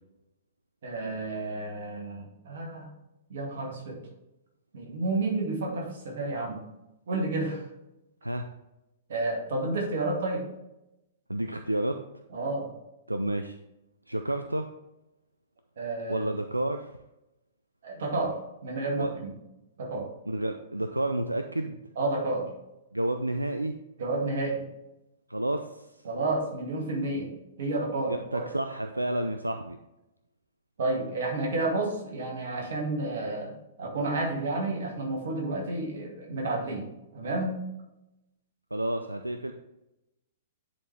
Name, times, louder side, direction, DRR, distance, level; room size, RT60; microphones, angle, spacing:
voice 1, 0.8-2.9 3.3-4.0 4.7-6.6 7.1-7.7 9.1-10.4 12.3-12.7 15.8-16.3 17.8-19.3 19.8-20.1 22.0-22.5 24.0-24.6 26.0-28.5 30.8-36.9 37.1-37.6, right 2 dB, 55° right, 0 dB, 1.9 m, -31 dB
voice 2, 11.3-12.0 13.1-13.6 14.1-14.7 16.1-16.9 19.0-19.1 20.3-21.8 22.9-23.8 25.3-25.9 28.0-29.8 38.7-39.5, right 1 dB, 85° right, 7 dB, 0.4 m, -30 dB
10.0 x 4.2 x 3.4 m, 0.92 s
figure-of-eight pair, 110°, 0 cm